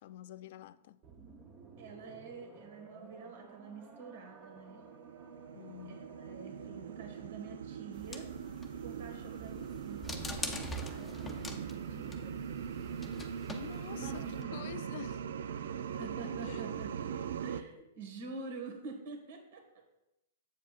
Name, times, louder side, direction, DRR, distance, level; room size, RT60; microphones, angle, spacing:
voice 1, 0.0-1.0 5.5-6.2 13.1-15.3 16.4-16.7, left 13 dB, 55° left, 0.3 m, -48 dB
sound 1, 1.0-7.5, right 3 dB, 25° right, 0.9 m, -55 dB
voice 2, 1.8-4.8 5.9-8.3 8.8-12.4 13.9-14.8 15.8-19.6, right 4 dB, 60° right, 1.8 m, -47 dB
sound 2, 4.5-17.6, right 8 dB, 75° right, 0.4 m, -41 dB
sound 3, 7.9-14.4, left 1 dB, 10° left, 0.7 m, -45 dB
7.9 x 7.2 x 2.5 m
hypercardioid pair, 145°, 0 cm